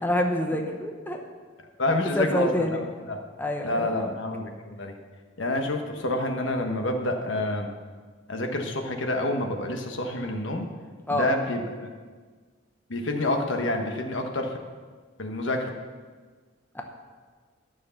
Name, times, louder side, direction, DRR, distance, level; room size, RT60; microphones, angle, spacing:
voice 1, 0.0-1.2 2.2-2.8 3.4-4.1 11.1-11.3 16.7-16.8, left 1 dB, 10° left, 3 dB, 0.8 m, -27 dB
voice 2, 1.8-3.2 3.6-4.9 5.4-7.7 8.3-10.7 11.1-11.9 12.9-14.6 15.2-15.7, left 1 dB, 75° left, 4 dB, 1.3 m, -28 dB
11.5 x 6.4 x 7.0 m, 1.5 s
head